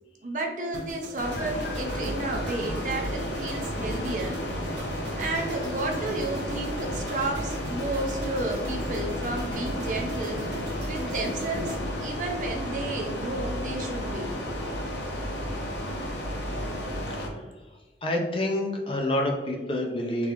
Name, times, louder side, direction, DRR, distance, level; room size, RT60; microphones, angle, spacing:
voice 1, 0.2-4.3 5.2-10.4 10.8-14.3, right 2 dB, 45° right, 1 dB, 0.6 m, -32 dB
sound 1, 0.7-12.9 13.2-13.5, right 1 dB, 75° right, 1.0 m, -39 dB
sound 2, 1.2-17.3, equal, 80° left, 0.8 m, -32 dB
voice 2, 18.0-20.3, left 1 dB, 30° left, 1 dB, 0.6 m, -28 dB
4.1 x 3.3 x 2.9 m, 1.2 s
head